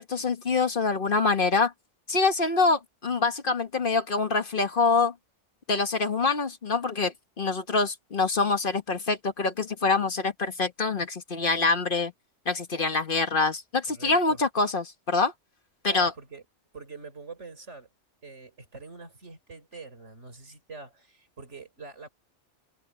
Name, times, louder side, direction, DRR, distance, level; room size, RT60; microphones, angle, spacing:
voice 1, 0.0-1.7 2.1-5.1 5.7-12.1 12.5-15.3 15.8-16.1, left 4 dB, 50° left, 1.4 m, -25 dB
voice 2, 13.9-14.4 15.9-16.4 16.7-17.9 18.2-22.1, right 4 dB, 75° right, 4.4 m, -44 dB
omnidirectional pair, 1.2 m